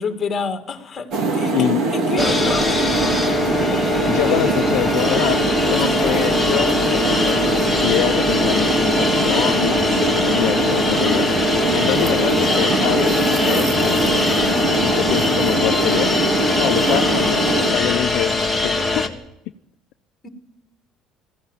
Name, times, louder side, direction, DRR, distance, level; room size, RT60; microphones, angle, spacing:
voice 1, 0.0-1.6 1.9-2.7 20.2-20.3, left 5 dB, 20° left, 7 dB, 2.2 m, -27 dB
sound 1, 1.1-17.7, right 3 dB, 45° right, 2.5 m, -22 dB
sound 2, 2.2-19.1, left 3 dB, ahead, 1.7 m, -22 dB
voice 2, 4.1-5.4 5.7-11.3 11.7-16.1 16.6-18.3 18.6-19.1, left 15 dB, 60° left, 7 dB, 0.7 m, -25 dB
20.0 x 15.0 x 9.1 m, 0.86 s
cardioid pair, 170°, 0 cm